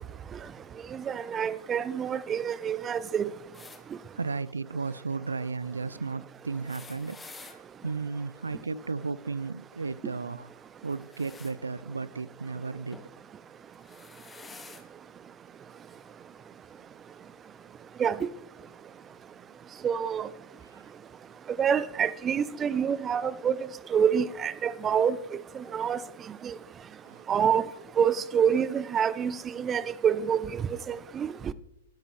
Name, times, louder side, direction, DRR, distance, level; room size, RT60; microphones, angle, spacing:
voice 1, 0.9-3.3 18.0-18.3 19.8-20.3 21.6-23.6 23.9-25.2 25.5-26.0 26.4-26.5 27.3-27.6 28.0-30.6 30.9-31.5, right 7 dB, 20° right, 0.6 m, -27 dB
sound 1, 3.5-3.8 6.4-7.6 10.8-11.6 12.9-13.1 13.7-14.9 15.9-16.0 17.2-17.3, left 4 dB, 10° left, 1.5 m, -49 dB
voice 2, 4.2-10.5 10.8-13.0 20.6-20.8 27.0-27.2, right 4 dB, 80° right, 0.5 m, -34 dB
21.0 x 13.0 x 3.2 m
figure-of-eight pair, 105°, 0 cm